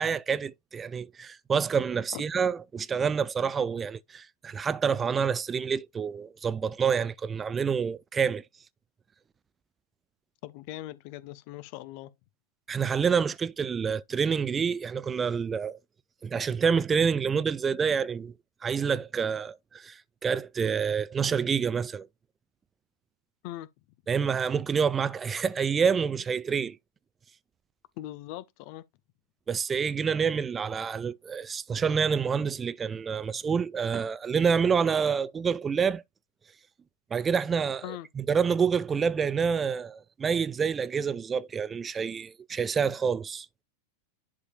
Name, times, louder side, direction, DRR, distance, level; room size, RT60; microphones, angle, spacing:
voice 1, 0.0-8.4 12.7-15.8 16.2-18.3 18.6-22.1 24.1-26.8 29.5-36.0 37.1-43.5, right 6 dB, 20° right, 0.4 m, -27 dB
voice 2, 10.4-12.1 23.4-23.7 28.0-28.8 37.8-38.1, left 15 dB, 45° left, 0.5 m, -40 dB
11.0 x 4.8 x 2.2 m
figure-of-eight pair, 90°, 0 cm